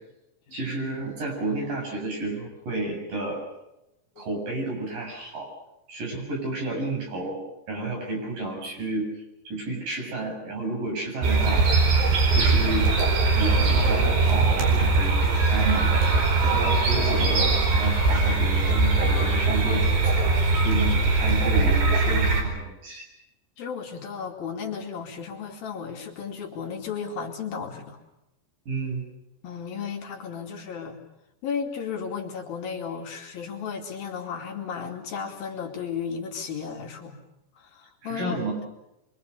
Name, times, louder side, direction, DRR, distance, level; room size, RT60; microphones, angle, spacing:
voice 1, 0.5-3.4 4.2-5.5 5.9-7.4 7.7-9.1 9.5-11.7 12.3-12.9 13.3-20.2 20.6-23.1 28.7-29.1 38.0-38.6, right 2 dB, 55° right, 1 dB, 9.1 m, -31 dB
sound 1, 11.2-22.4, right 3 dB, 75° right, 6.8 m, -21 dB
voice 2, 23.6-28.0 29.4-31.0 31.4-37.2 37.6-38.4, left 6 dB, 60° left, 1 dB, 4.3 m, -34 dB
25.5 x 25.0 x 6.8 m, 0.89 s
omnidirectional pair, 4.7 m